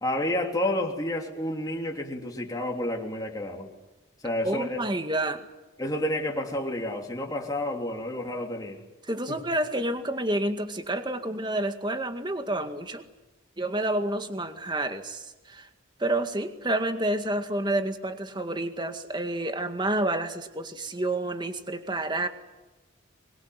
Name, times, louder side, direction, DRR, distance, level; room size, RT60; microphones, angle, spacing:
voice 1, 0.0-3.7 4.2-4.8 5.8-8.8 9.3-9.4, left 1 dB, 20° left, 1 dB, 3.1 m, -30 dB
voice 2, 4.4-5.5 9.1-13.0 13.6-15.7 16.0-22.3, right 1 dB, 20° right, 7 dB, 2.0 m, -29 dB
24.5 x 22.5 x 9.4 m, 1.1 s
head